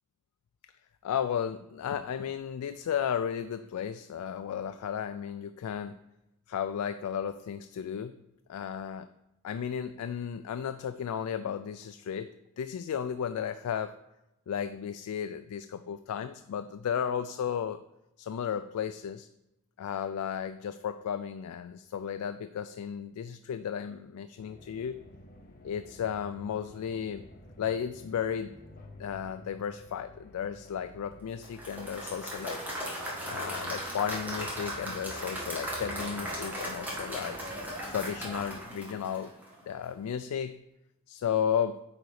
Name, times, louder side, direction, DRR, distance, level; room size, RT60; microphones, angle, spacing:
voice 1, 1.0-6.0 6.5-8.2 8.5-9.1 9.4-12.3 12.6-14.0 14.5-17.8 18.2-19.3 19.8-25.0 25.6-27.3 27.6-28.6 29.0-32.6 33.2-37.4 37.9-39.3 39.7-40.6 41.1-41.8, left 8 dB, 85° left, 10 dB, 0.3 m, -34 dB
sound 1, 24.4-38.6, left 1 dB, 40° left, 0.8 m, -51 dB
Applause / Crowd, 31.4-39.6, equal, 10° right, 1.6 m, -37 dB
8.7 x 4.0 x 4.8 m, 0.91 s
head